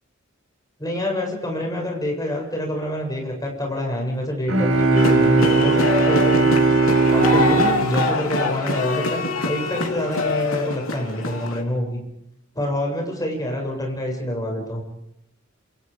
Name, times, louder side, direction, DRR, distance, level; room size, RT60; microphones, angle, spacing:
voice 1, 0.8-6.5 7.1-12.0 12.5-14.8, equal, 20° left, 0 dB, 7.8 m, -26 dB
sound 1, 4.5-9.2, right 3 dB, 80° right, 6.2 m, -19 dB
sound 2, 4.9-11.6, left 3 dB, 85° left, 3.4 m, -25 dB
28.0 x 28.0 x 5.3 m, 0.83 s
head